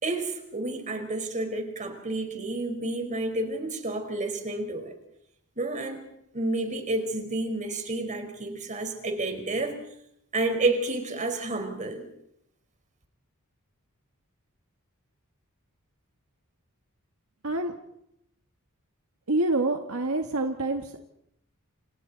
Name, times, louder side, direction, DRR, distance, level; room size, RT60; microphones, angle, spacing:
voice 1, 0.0-4.9 5.6-6.1 6.3-9.7 10.3-12.0, right 2 dB, 35° right, 5 dB, 4.5 m, -30 dB
voice 2, 17.4-17.7 19.3-21.0, right 2 dB, 70° right, 4 dB, 1.8 m, -27 dB
29.0 x 28.0 x 4.1 m, 0.73 s
head